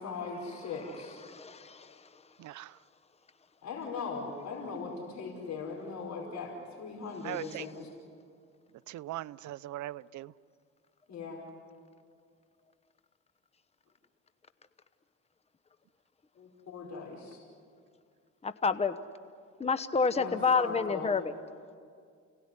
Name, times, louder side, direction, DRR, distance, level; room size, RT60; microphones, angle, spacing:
voice 1, 0.0-1.2 3.6-7.9 11.1-11.4 16.4-17.4 20.1-21.1, left 4 dB, 65° left, -1 dB, 5.1 m, -39 dB
voice 2, 1.2-2.0 18.4-19.0 19.6-21.3, left 5 dB, 20° left, 11 dB, 1.0 m, -29 dB
voice 3, 2.4-2.7 7.2-7.6 8.9-10.3, right 15 dB, 70° right, 17 dB, 0.6 m, -40 dB
30.0 x 18.0 x 9.8 m, 2.2 s
cardioid pair, 90°, 30 cm